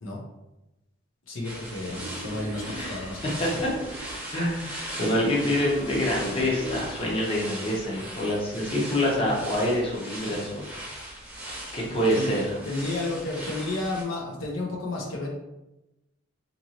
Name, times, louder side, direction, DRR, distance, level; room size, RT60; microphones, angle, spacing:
voice 1, 1.3-3.6 12.2-12.3 12.7-15.3, left 2 dB, 75° left, -2 dB, 0.7 m, -32 dB
sound 1, 1.4-14.0, right 1 dB, 5° right, 0.7 m, -39 dB
Wild animals, 1.9-4.4 4.9-7.4, right 2 dB, 50° right, 0.4 m, -40 dB
voice 2, 2.8-3.7 4.3-10.6 11.7-12.6, left 1 dB, 30° left, -4 dB, 0.8 m, -26 dB
2.9 x 2.6 x 2.8 m, 0.96 s
head